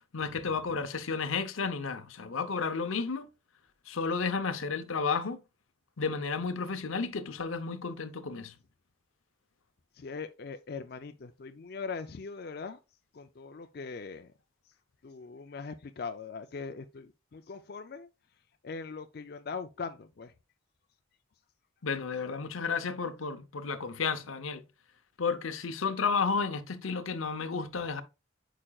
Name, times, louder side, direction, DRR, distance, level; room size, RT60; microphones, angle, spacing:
voice 1, 0.1-3.3 3.9-5.4 6.0-8.5 21.8-24.6 25.2-28.0, left 5 dB, 85° left, 0.7 m, -32 dB
voice 2, 10.0-12.8 13.1-14.3 15.0-18.1 18.6-20.3, left 5 dB, 50° left, 0.4 m, -41 dB
8.7 x 5.0 x 2.3 m
head